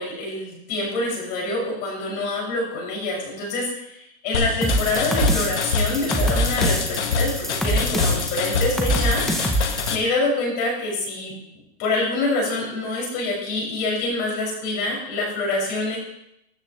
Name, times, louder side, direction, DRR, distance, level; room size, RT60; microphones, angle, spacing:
voice 1, 0.0-9.2 9.5-11.3 11.8-16.0, left 2 dB, 30° left, -2 dB, 6.0 m, -26 dB
sound 1, 4.3-10.0, left 5 dB, 85° left, 1.6 m, -25 dB
sound 2, 4.6-9.9, right 1 dB, ahead, 0.6 m, -25 dB
14.0 x 13.0 x 3.1 m, 0.81 s
supercardioid pair, 165°, 34 cm